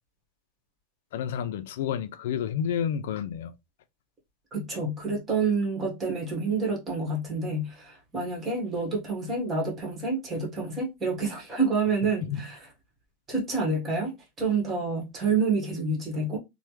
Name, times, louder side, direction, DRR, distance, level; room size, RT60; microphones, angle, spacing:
voice 1, 1.1-3.5 12.3-12.5, left 8 dB, 75° left, 0.4 m, -30 dB
voice 2, 4.5-12.6 13.3-16.4, right 4 dB, 20° right, 1.3 m, -28 dB
3.2 x 2.1 x 3.0 m
supercardioid pair, 140°, 0 cm